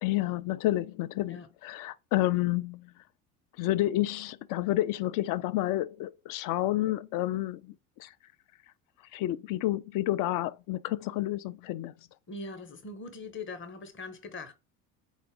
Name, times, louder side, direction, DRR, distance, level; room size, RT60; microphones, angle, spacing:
voice 1, 0.0-2.9 3.6-7.7 8.0-8.1 9.1-11.9, left 15 dB, 50° left, 0.5 m, -30 dB
voice 2, 12.3-14.5, left 3 dB, 30° left, 0.9 m, -41 dB
4.0 x 2.4 x 3.6 m
hypercardioid pair, 65°, 42 cm